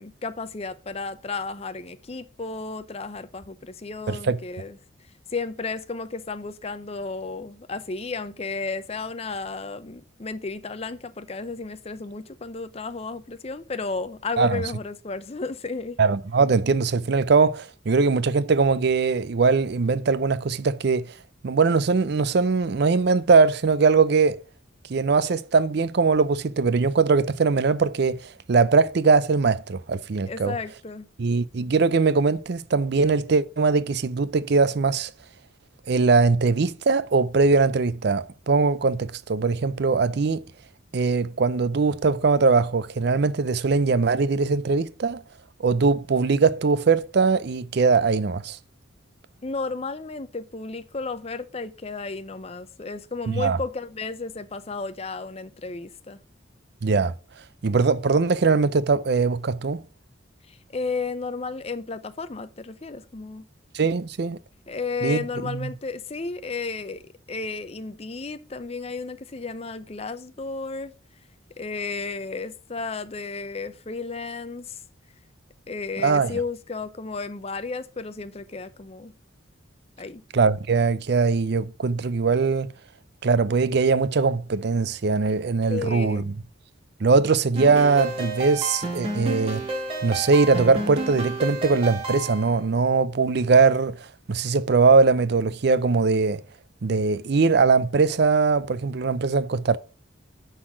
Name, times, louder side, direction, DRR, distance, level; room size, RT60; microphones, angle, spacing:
voice 1, 0.0-4.8 5.3-16.0 30.3-31.1 49.4-56.2 60.5-63.5 64.7-67.0 67.3-70.9 71.6-74.8 75.7-79.1 80.0-80.2 85.7-86.3, left 4 dB, 30° left, 0.6 m, -33 dB
voice 2, 4.1-4.4 14.4-14.6 16.0-21.1 21.4-24.4 24.9-28.2 28.5-30.6 31.2-35.1 35.9-40.4 40.9-45.2 45.6-48.6 53.3-53.6 56.8-57.1 57.6-59.8 63.7-64.4 65.0-65.7 76.0-76.4 80.3-82.7 83.2-86.3 87.0-89.7 90.0-94.0 94.3-96.4 96.8-99.8, right 4 dB, 55° right, 0.5 m, -21 dB
sound 1, 87.6-92.6, right 2 dB, 30° right, 1.8 m, -31 dB
9.8 x 4.1 x 6.1 m
head